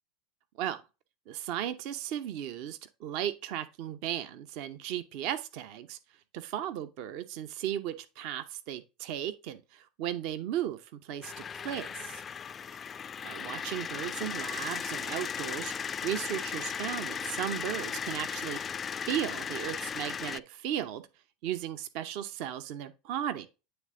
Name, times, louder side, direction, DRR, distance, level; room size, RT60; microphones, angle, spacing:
voice 1, 1.3-6.0 6.3-12.2 13.2-15.7 16.0-18.6 19.1-21.0 21.4-23.5, right 11 dB, 60° right, 0.7 m, -36 dB
sound 1, 11.2-20.4, left 7 dB, 30° left, 0.3 m, -36 dB
9.0 x 3.4 x 3.7 m
hypercardioid pair, 85°, 0 cm